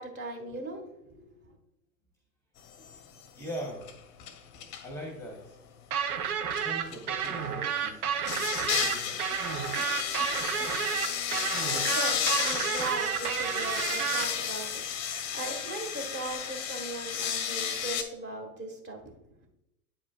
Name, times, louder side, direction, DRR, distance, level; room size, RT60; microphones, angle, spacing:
voice 1, 0.0-1.5 11.7-19.1, right 2 dB, 25° right, 1 dB, 1.6 m, -39 dB
sound 1, 2.8-3.2 3.5-4.9 6.5-7.5 8.2-18.0, left 8 dB, 35° left, 0.8 m, -33 dB
voice 2, 3.3-3.9 4.8-5.6 6.6-9.4 13.4-13.5, equal, 5° left, 1 dB, 1.1 m, -42 dB
sound 2, 5.9-14.3, right 8 dB, 70° right, 0.9 m, -31 dB
8.5 x 4.9 x 2.4 m, 0.84 s
hypercardioid pair, 95°, 46 cm